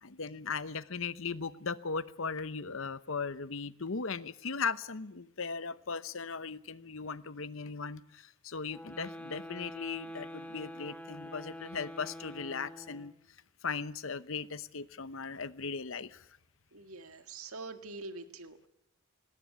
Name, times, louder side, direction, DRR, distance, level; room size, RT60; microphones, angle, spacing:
voice 1, 0.0-13.1 13.6-16.2, left 5 dB, 65° left, 15 dB, 0.9 m, -38 dB
sound 1, 8.6-13.2, left 1 dB, 5° left, 1.9 m, -46 dB
voice 2, 16.7-18.7, right 3 dB, 80° right, 8 dB, 1.9 m, -45 dB
19.5 x 18.5 x 8.2 m, 0.87 s
head